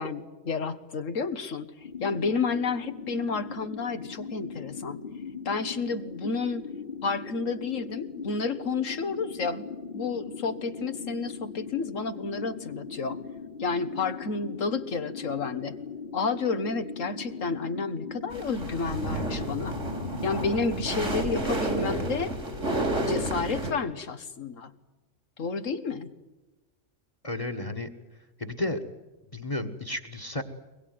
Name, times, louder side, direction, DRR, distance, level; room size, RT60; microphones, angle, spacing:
voice 1, 0.0-5.0 5.4-6.6 7.0-9.6 9.9-13.2 13.6-15.7 16.1-19.8 20.2-22.3 23.1-24.7 25.4-26.1, left 4 dB, 90° left, 9 dB, 1.8 m, -31 dB
sound 1, 1.8-21.4, left 6 dB, 45° left, 1.7 m, -40 dB
sound 2, 18.3-23.7, right 1 dB, 70° right, 3.9 m, -31 dB
voice 2, 27.2-27.9 28.4-28.8 29.3-30.4, left 2 dB, 30° left, 8 dB, 1.6 m, -32 dB
24.0 x 21.0 x 9.5 m, 1.1 s
omnidirectional pair, 1.3 m